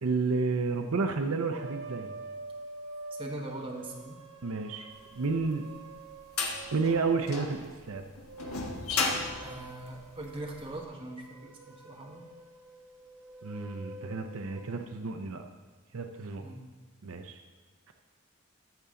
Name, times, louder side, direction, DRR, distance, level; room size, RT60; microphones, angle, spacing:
voice 1, 0.0-2.1 4.4-4.9 5.1-5.7 6.7-8.0 13.4-15.5 15.9-16.4 17.0-17.4 17.9-18.0, right 4 dB, 70° right, 5 dB, 0.6 m, -31 dB
sound 1, 1.5-7.6 8.1-15.0, right 2 dB, 90° right, 1.3 m, -47 dB
voice 2, 3.1-4.2 9.4-12.2 16.4-16.7, right 1 dB, 25° right, -1 dB, 1.2 m, -41 dB
sound 2, 5.3-10.6, left 4 dB, 85° left, 1.3 m, -34 dB
14.0 x 7.0 x 3.8 m, 1.4 s
head